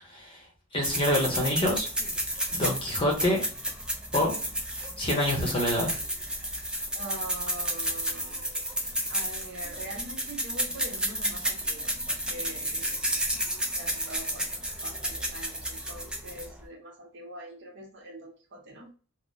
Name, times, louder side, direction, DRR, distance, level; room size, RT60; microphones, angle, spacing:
voice 1, 0.1-0.4 0.7-1.9 2.5-3.4 4.1-4.3 5.0-5.9, left 1 dB, 25° left, 0 dB, 0.8 m, -26 dB
sound 1, 0.8-16.6, right 1 dB, 5° right, 0.4 m, -32 dB
voice 2, 6.9-14.5 14.8-18.9, right 1 dB, 55° right, 0 dB, 0.9 m, -44 dB
3.5 x 2.0 x 2.6 m, 0.39 s
head